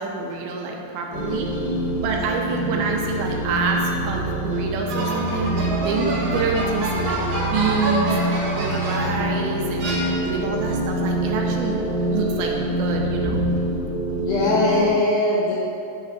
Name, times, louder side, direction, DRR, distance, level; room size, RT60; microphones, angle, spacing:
voice 1, 0.0-1.5 1.9-11.8 12.1-13.4, right 4 dB, 85° right, 0 dB, 2.6 m, -27 dB
sound 1, 1.1-14.9, right 1 dB, 60° left, 2.2 m, -26 dB
sound 2, 4.9-9.3 9.8-10.6, right 1 dB, 55° right, 1.5 m, -28 dB
voice 2, 14.2-15.5, left 2 dB, 85° left, -5 dB, 1.8 m, -20 dB
9.1 x 3.3 x 6.0 m, 2.6 s
omnidirectional pair, 4.6 m